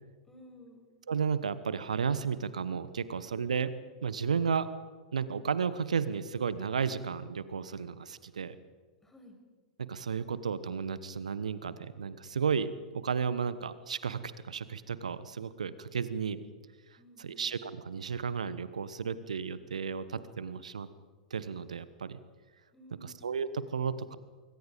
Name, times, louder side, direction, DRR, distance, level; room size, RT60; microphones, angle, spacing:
voice 1, 0.3-0.9 9.0-9.4 17.0-17.5 22.7-23.2, left 1 dB, 10° left, 2 dB, 6.2 m, -55 dB
voice 2, 1.1-3.7 4.0-4.7 5.1-8.6 9.8-16.4 17.2-20.9 21.3-22.2 23.0-24.2, right 6 dB, 70° right, 15 dB, 1.1 m, -33 dB
25.5 x 24.0 x 5.2 m, 1.4 s
figure-of-eight pair, 100°, 4 cm